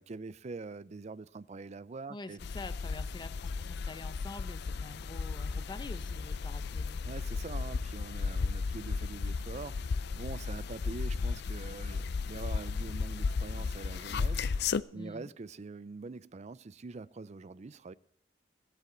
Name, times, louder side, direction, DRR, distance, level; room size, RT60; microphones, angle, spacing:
voice 1, 0.0-2.4 7.0-17.9, right 3 dB, 35° right, 0.4 m, -44 dB
voice 2, 2.1-7.1 14.9-15.3, left 2 dB, 25° left, 0.7 m, -46 dB
sound 1, 2.4-14.8, left 4 dB, 60° left, 0.4 m, -34 dB
22.5 x 8.4 x 3.9 m
head